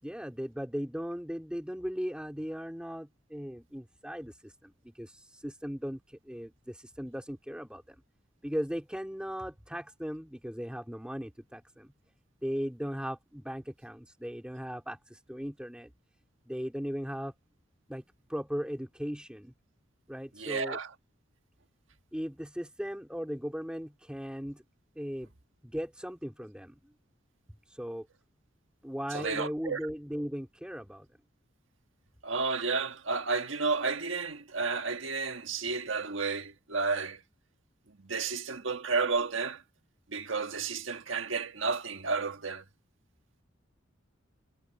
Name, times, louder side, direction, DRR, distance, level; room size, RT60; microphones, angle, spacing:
voice 1, 0.0-8.0 8.4-11.9 12.4-15.9 16.5-17.3 17.9-18.0 18.3-19.5 20.1-20.8 22.1-24.6 24.9-25.3 25.6-26.9 27.7-28.1 28.8-31.1, equal, 5° right, 4.3 m, -38 dB
voice 2, 20.4-20.9 29.1-29.8 32.2-37.2 38.0-39.6 40.1-42.6, right 4 dB, 70° right, 1.6 m, -32 dB
head